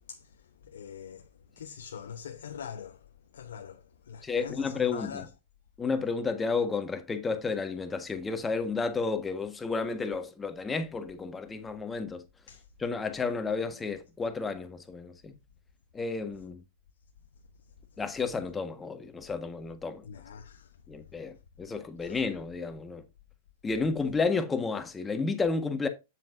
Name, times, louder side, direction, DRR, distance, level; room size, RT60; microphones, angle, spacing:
voice 1, 0.6-1.3 1.6-3.0 3.3-5.3 12.5-12.6 20.0-20.7 22.0-22.2, left 8 dB, 75° left, 0.8 m, -43 dB
voice 2, 4.2-5.3 5.8-12.2 12.8-15.3 15.9-16.6 18.0-20.0 20.9-23.0 23.6-25.9, left 4 dB, 15° left, 1.5 m, -31 dB
7.9 x 7.2 x 2.6 m
hypercardioid pair, 105°, 0 cm